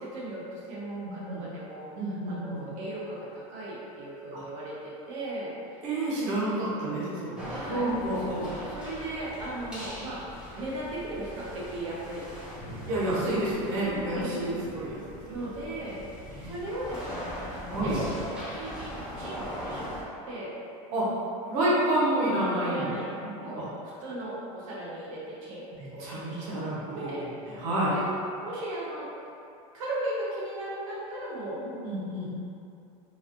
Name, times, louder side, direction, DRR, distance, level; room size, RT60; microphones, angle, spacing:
voice 1, 0.0-1.9 2.3-5.8 7.5-7.9 8.7-10.2 10.6-12.3 13.8-14.1 15.3-20.0 20.3-20.6 22.6-25.6 25.9-26.6 26.9-27.6 27.9-28.1 28.4-29.1 29.7-31.6, right 1 dB, 75° right, -6 dB, 0.9 m, -37 dB
voice 2, 2.0-2.7 4.3-4.4 5.8-8.6 12.9-15.0 15.8-15.9 16.3-16.5 17.7-18.0 20.9-21.1 21.5-22.9 23.2-23.3 23.6-23.7 25.7-28.0 31.5-32.3, right 1 dB, 50° right, -8 dB, 1.0 m, -29 dB
sound 1, 7.4-20.0, equal, 5° right, 0.7 m, -40 dB
3.1 x 2.5 x 2.5 m, 2.6 s
supercardioid pair, 150°, 17 cm